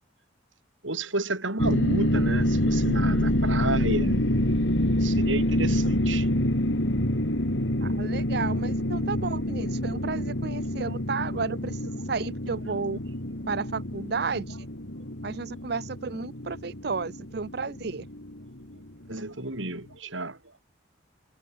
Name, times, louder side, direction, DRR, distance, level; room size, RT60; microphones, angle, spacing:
voice 1, 0.8-4.3 5.0-6.3 19.1-20.4, right 2 dB, 90° right, 7.5 m, -31 dB
sound 1, 1.6-18.8, left 1 dB, 75° left, 4.1 m, -27 dB
voice 2, 7.8-11.8 12.1-13.0 13.5-14.6 15.2-18.0, right 4 dB, 55° right, 0.7 m, -32 dB
head